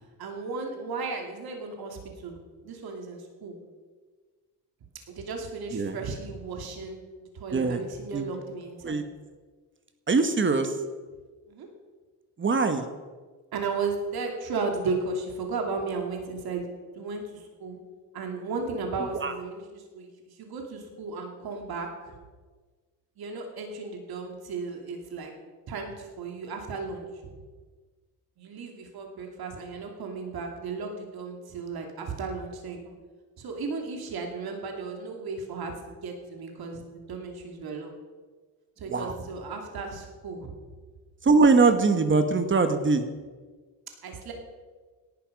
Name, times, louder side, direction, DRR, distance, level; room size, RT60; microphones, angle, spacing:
voice 1, 0.2-2.4 2.6-3.6 5.1-7.0 7.3-9.0 11.5-11.7 13.5-16.7 16.9-17.8 18.1-22.1 23.2-25.3 25.7-27.4 28.4-32.9 33.4-37.9 38.8-40.5 44.0-44.3, right 4 dB, 65° right, 2 dB, 2.8 m, -35 dB
voice 2, 7.5-7.8 8.1-8.3 8.8-9.0 10.1-10.7 12.4-12.8 19.2-19.3 38.9-39.1 41.2-43.0, right 4 dB, 30° right, 8 dB, 1.3 m, -22 dB
17.5 x 12.0 x 5.3 m, 1.4 s
cardioid pair, 135°, 40 cm